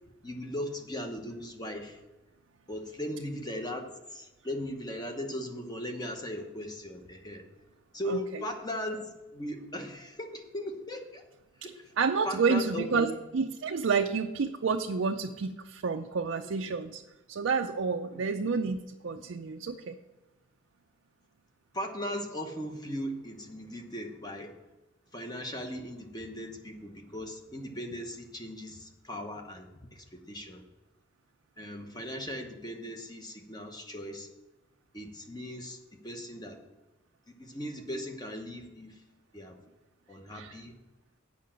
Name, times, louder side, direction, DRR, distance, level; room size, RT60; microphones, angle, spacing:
voice 1, 0.2-2.0 2.7-7.4 7.9-11.2 11.7-11.8 12.2-13.2 16.4-16.7 18.1-18.2 21.7-24.5 25.1-30.6 31.6-34.3 34.9-35.8 36.0-36.6 37.3-39.0 39.3-39.6 40.1-40.8, equal, 20° left, 4 dB, 1.0 m, -38 dB
voice 2, 8.1-8.4 12.0-17.0 17.3-20.0 40.3-40.5, right 5 dB, 65° right, 4 dB, 0.5 m, -29 dB
8.4 x 5.7 x 7.5 m, 1.1 s
head